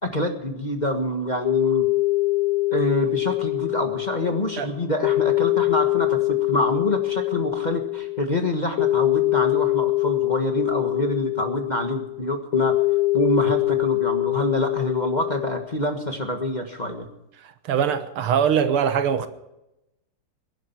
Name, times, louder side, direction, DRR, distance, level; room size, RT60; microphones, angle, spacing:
voice 1, 0.0-1.9 2.7-12.8 13.1-17.1, left 1 dB, 25° left, 1.4 m, -26 dB
sound 1, 1.4-15.6, left 19 dB, 60° left, 1.0 m, -23 dB
voice 2, 17.7-19.3, right 8 dB, 85° right, 2.0 m, -22 dB
21.0 x 11.0 x 4.5 m
omnidirectional pair, 2.3 m